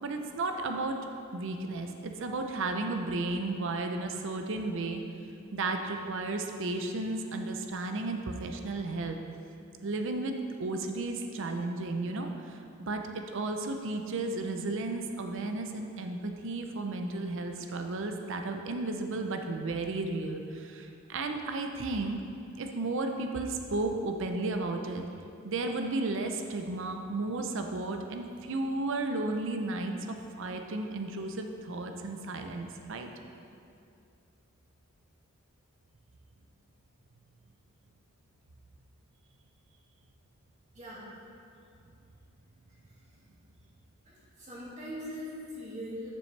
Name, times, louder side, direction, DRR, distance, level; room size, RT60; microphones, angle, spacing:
voice 1, 0.0-5.0 5.5-9.2 9.8-13.0 13.3-22.2 22.6-25.0 25.4-33.1, right 2 dB, 55° right, 5 dB, 0.6 m, -33 dB
voice 2, 40.7-41.1 42.8-43.2 44.0-46.1, equal, 35° right, -8 dB, 2.0 m, -42 dB
11.5 x 6.1 x 3.3 m, 2.5 s
head